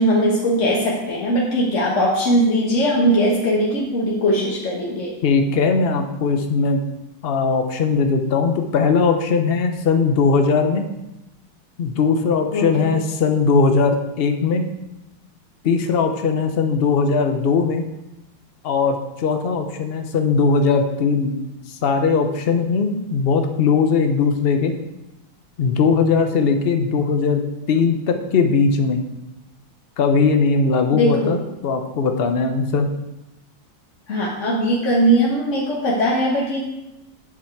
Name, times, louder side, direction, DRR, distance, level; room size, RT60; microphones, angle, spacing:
voice 1, 0.0-5.1 12.5-12.9 30.9-31.4 34.1-36.6, equal, 45° left, -4 dB, 1.5 m, -20 dB
voice 2, 5.2-6.8 7.2-10.8 11.8-14.7 15.6-17.8 18.6-24.8 25.6-29.0 30.0-32.9, left 4 dB, 85° left, 6 dB, 0.5 m, -19 dB
8.6 x 7.3 x 4.6 m, 0.95 s
omnidirectional pair, 2.1 m